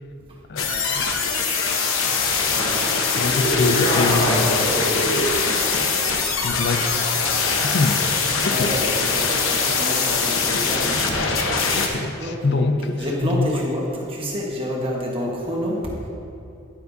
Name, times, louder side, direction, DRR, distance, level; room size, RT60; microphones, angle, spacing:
voice 1, 0.5-1.1 3.2-4.8 6.4-6.9 7.6-8.0 8.4-8.7 11.5-13.5, left 3 dB, 55° left, 7 dB, 0.5 m, -24 dB
sound 1, 0.6-11.9, left 5 dB, 85° left, 1.0 m, -22 dB
voice 2, 2.4-2.9 8.4-11.3 12.2-12.7 13.0-16.1, equal, 25° right, -2 dB, 1.4 m, -28 dB
sound 2, 3.1-5.4, equal, 30° left, 1.3 m, -24 dB
10.5 x 9.4 x 2.7 m, 2.8 s
head